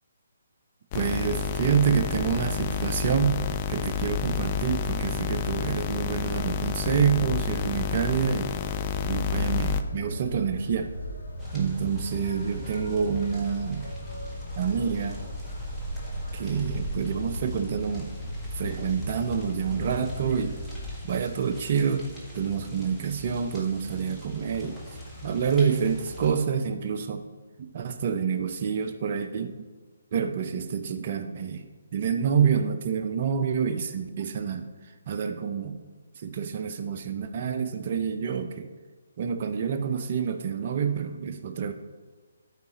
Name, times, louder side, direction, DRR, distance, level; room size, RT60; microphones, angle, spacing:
sound 1, 0.9-9.8, left 6 dB, 30° left, 0.4 m, -29 dB
voice 1, 0.9-3.4 3.7-8.5 9.0-10.9 11.5-13.9 14.6-15.2 16.3-18.1 18.6-20.5 21.0-22.1 22.3-24.8 25.2-27.2 27.6-29.6 30.1-34.7 35.1-35.8 36.2-38.7 39.2-41.7, right 7 dB, 45° right, 7 dB, 0.7 m, -27 dB
sound 2, 9.2-20.9, equal, 85° left, 1.9 m, -36 dB
sound 3, 11.4-26.3, left 1 dB, ahead, 1.5 m, -43 dB
13.0 x 5.0 x 2.9 m, 1.4 s
figure-of-eight pair, 145°, 0 cm